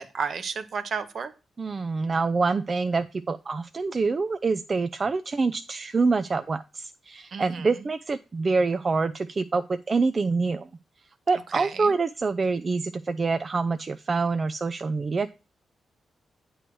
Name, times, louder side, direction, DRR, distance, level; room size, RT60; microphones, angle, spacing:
voice 1, 0.0-1.3 7.3-7.7 11.5-11.9, right 5 dB, 60° right, 0.8 m, -32 dB
voice 2, 1.6-10.7 11.3-15.3, right 4 dB, 45° right, 0.4 m, -26 dB
7.9 x 3.1 x 6.0 m
supercardioid pair, 50°, 0 cm